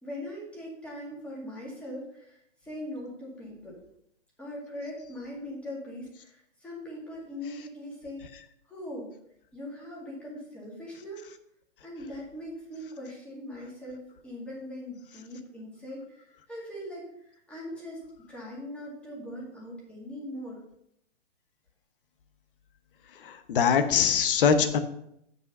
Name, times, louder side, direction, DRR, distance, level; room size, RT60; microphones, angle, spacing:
voice 1, 0.0-3.8 4.4-8.2 8.6-9.1 9.5-11.3 11.8-18.0 18.3-20.6, left 1 dB, 5° left, -5 dB, 2.1 m, -41 dB
voice 2, 23.2-24.8, left 7 dB, 45° left, 9 dB, 1.0 m, -23 dB
8.5 x 5.4 x 5.3 m, 0.75 s
hypercardioid pair, 150°, 37 cm